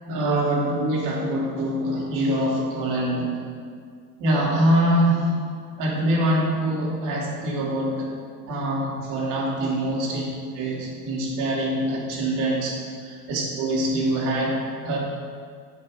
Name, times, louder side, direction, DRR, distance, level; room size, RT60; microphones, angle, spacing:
voice 1, 0.1-3.4 4.2-5.3 5.8-8.1 8.5-10.2 10.6-14.6 14.8-15.0, right 1 dB, 40° right, -3 dB, 2.5 m, -24 dB
10.0 x 5.6 x 4.8 m, 2.1 s
supercardioid pair, 130°, 48 cm